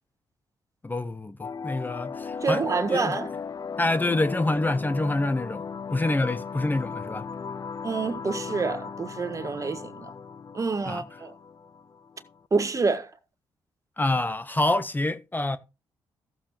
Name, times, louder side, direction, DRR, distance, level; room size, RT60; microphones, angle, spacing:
voice 1, 0.8-3.2 3.8-5.6 5.9-7.2 10.9-11.0 14.0-15.6, left 2 dB, 20° left, 0.9 m, -26 dB
sound 1, 1.4-12.4, left 5 dB, 40° left, 0.5 m, -37 dB
voice 2, 2.4-3.3 7.8-10.1 10.5-11.3 12.5-13.1, right 4 dB, 35° right, 1.3 m, -27 dB
14.5 x 7.1 x 2.9 m
supercardioid pair, 55°, 9 cm